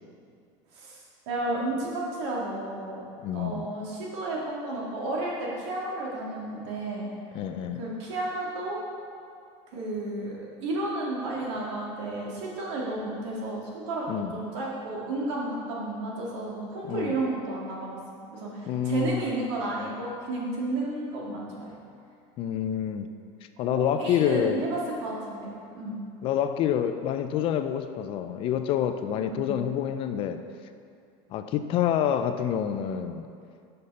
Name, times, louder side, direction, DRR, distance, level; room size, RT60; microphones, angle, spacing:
voice 1, 1.3-3.0 3.3-7.1 7.8-8.8 9.7-18.0 18.3-21.7 23.6-25.5 25.7-26.0 29.1-29.6, right 2 dB, 85° right, -4 dB, 2.0 m, -32 dB
voice 2, 3.2-3.7 7.3-7.8 14.1-14.4 16.9-17.1 18.7-19.3 22.4-23.1 23.6-24.7 26.2-30.4 31.3-33.2, left 9 dB, 40° left, 9 dB, 0.4 m, -27 dB
6.6 x 5.6 x 5.4 m, 2.4 s
cardioid pair, 155°, 14 cm